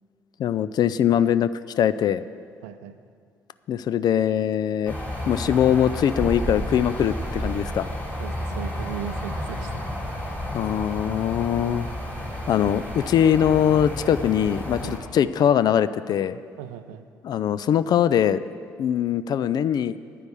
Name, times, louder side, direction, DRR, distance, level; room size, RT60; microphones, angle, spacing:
voice 1, 0.4-2.2 3.7-5.0 5.3-7.9 10.5-11.9 12.5-16.4 17.2-18.4 18.8-20.0, left 9 dB, 45° left, 15 dB, 0.4 m, -22 dB
voice 2, 2.6-3.0 8.2-10.0 14.8-15.0 16.6-17.1, right 10 dB, 70° right, 10 dB, 0.6 m, -37 dB
sound 1, 4.9-15.0, left 1 dB, 15° left, 3.0 m, -31 dB
9.6 x 9.2 x 6.2 m, 2.2 s
figure-of-eight pair, 50°, 9 cm